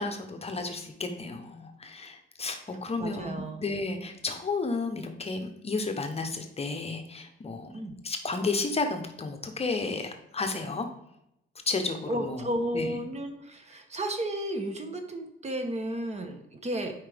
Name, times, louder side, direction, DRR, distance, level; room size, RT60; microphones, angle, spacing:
voice 1, 0.0-10.9 11.7-13.0, left 3 dB, 30° left, 6 dB, 0.9 m, -32 dB
voice 2, 3.0-3.6 7.7-7.9 12.1-16.9, right 1 dB, 35° right, 5 dB, 1.1 m, -33 dB
8.6 x 5.0 x 3.4 m, 0.82 s
cardioid pair, 90°, 20 cm